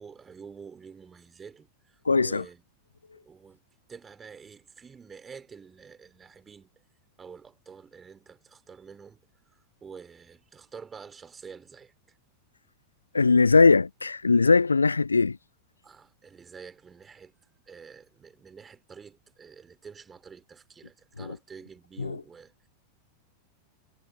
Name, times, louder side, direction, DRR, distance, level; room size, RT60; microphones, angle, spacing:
voice 1, 0.0-1.7 2.2-2.6 3.2-3.6 3.9-6.7 7.2-9.2 9.8-11.9 15.8-17.3 17.7-22.5, right 6 dB, 20° right, 3.5 m, -48 dB
voice 2, 2.1-2.4 13.1-15.4 21.2-21.4 22.0-22.2, left 4 dB, 80° left, 0.5 m, -20 dB
figure-of-eight pair, 90°, 0 cm